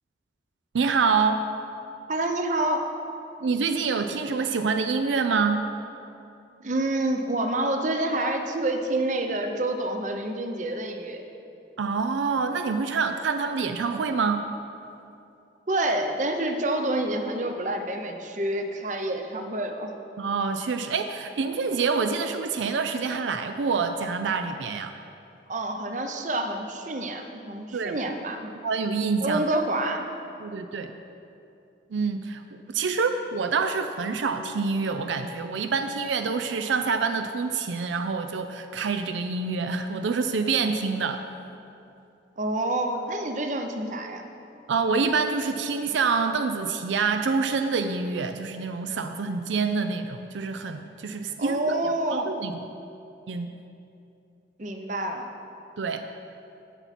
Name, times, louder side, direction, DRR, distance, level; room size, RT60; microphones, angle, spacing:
voice 1, 0.7-1.5 3.4-5.6 11.8-14.4 20.2-24.9 27.7-28.0 28.6-29.4 30.4-30.9 31.9-41.2 44.7-51.6 52.1-52.5 53.3-53.5 55.8-56.0, right 5 dB, 80° right, 7 dB, 0.5 m, -26 dB
voice 2, 2.1-2.8 6.6-11.2 15.7-19.9 25.5-28.5 29.2-30.1 42.4-44.2 51.4-52.3 54.6-55.3, right 1 dB, 40° right, 5 dB, 0.7 m, -28 dB
16.0 x 5.9 x 4.2 m, 2.7 s
head